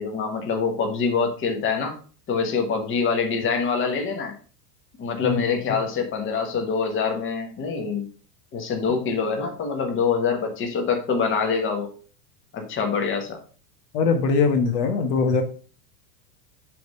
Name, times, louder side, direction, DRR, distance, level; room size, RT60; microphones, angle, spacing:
voice 1, 0.0-2.0 2.3-4.3 5.0-8.1 8.5-11.9 12.5-13.4, left 5 dB, 25° left, 3 dB, 1.4 m, -25 dB
voice 2, 13.9-15.4, left 4 dB, 65° left, 6 dB, 1.3 m, -21 dB
7.6 x 3.6 x 5.4 m, 0.39 s
supercardioid pair, 140°, 49 cm